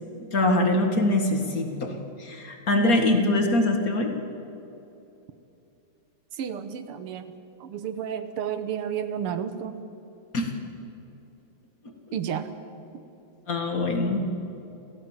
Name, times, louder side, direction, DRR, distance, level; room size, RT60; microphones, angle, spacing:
voice 1, 0.3-4.1 10.3-10.5 13.5-14.3, left 2 dB, 40° left, 4 dB, 2.2 m, -23 dB
voice 2, 6.3-9.8 12.1-12.5, right 8 dB, 85° right, 10 dB, 2.0 m, -32 dB
29.5 x 14.5 x 7.3 m, 2.9 s
omnidirectional pair, 2.4 m